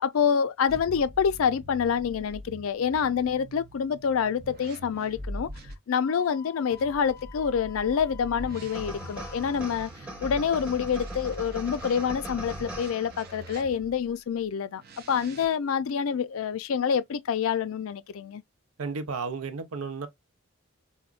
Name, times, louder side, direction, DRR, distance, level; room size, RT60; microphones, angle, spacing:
voice 1, 0.0-5.5 5.9-9.9 10.2-14.8 15.1-18.4, left 7 dB, 75° left, 0.4 m, -27 dB
sound 1, 0.7-5.8 6.7-14.1 14.8-15.5, equal, 45° right, 0.5 m, -42 dB
Wind instrument woodwind instrument, 6.0-9.8, left 12 dB, 15° left, 0.6 m, -49 dB
sound 2, 8.7-13.5, right 1 dB, 5° right, 1.0 m, -41 dB
voice 2, 18.8-20.1, right 4 dB, 85° right, 0.6 m, -33 dB
4.8 x 2.2 x 2.4 m
head